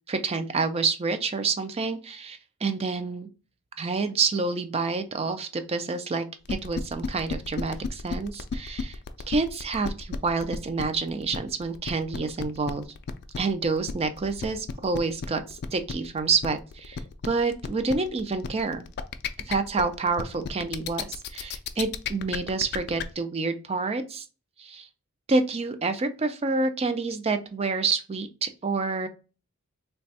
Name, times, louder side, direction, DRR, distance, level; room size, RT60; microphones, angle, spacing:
voice 1, 0.1-3.3 3.8-9.0 9.3-12.9 13.4-18.9 19.5-24.2 24.6-24.9 25.3-29.1, right 4 dB, 30° right, 9 dB, 0.4 m, -28 dB
sound 1, 6.5-23.0, left 6 dB, 50° left, 0.3 m, -33 dB
3.3 x 2.3 x 4.0 m, 0.34 s
head